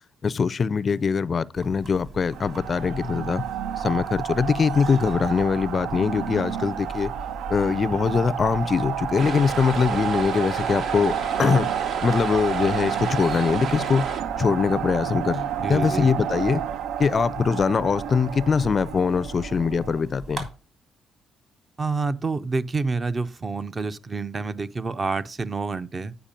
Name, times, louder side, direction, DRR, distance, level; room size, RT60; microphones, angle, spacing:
voice 1, 0.2-3.4 3.8-7.1 7.5-11.1 11.4-11.7 12.0-14.0 14.4-16.6 17.0-20.5, left 5 dB, 40° left, 0.4 m, -22 dB
sound 1, 1.5-20.4, right 3 dB, 45° right, 3.2 m, -41 dB
sound 2, 2.3-20.0, right 9 dB, 85° right, 0.4 m, -30 dB
sound 3, 9.2-14.2, right 5 dB, 70° right, 1.1 m, -33 dB
voice 2, 15.6-16.1 21.8-26.2, right 4 dB, 30° right, 0.5 m, -28 dB
8.8 x 4.8 x 5.2 m
cardioid pair, 90°, 0 cm